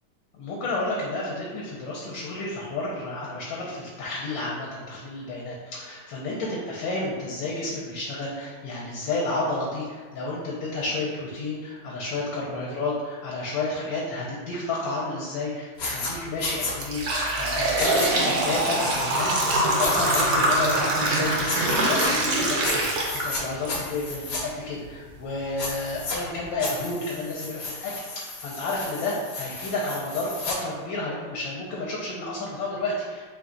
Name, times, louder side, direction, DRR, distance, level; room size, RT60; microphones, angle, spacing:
voice 1, 0.3-33.3, left 2 dB, 70° left, -4 dB, 1.4 m, -31 dB
sound 1, 15.8-16.1 16.4-16.7 17.8-18.1 19.8-20.2 21.4-22.1 22.6-23.4 23.7-24.4 25.6-26.2 26.6-30.6, left 3 dB, 55° left, 1.1 m, -33 dB
sound 2, 15.8-16.0 16.5-23.7 24.1-24.2 25.1-25.2 25.7-25.8 26.2-26.4, right 1 dB, 85° right, 0.6 m, -24 dB
4.6 x 2.3 x 3.8 m, 1.5 s
omnidirectional pair, 2.3 m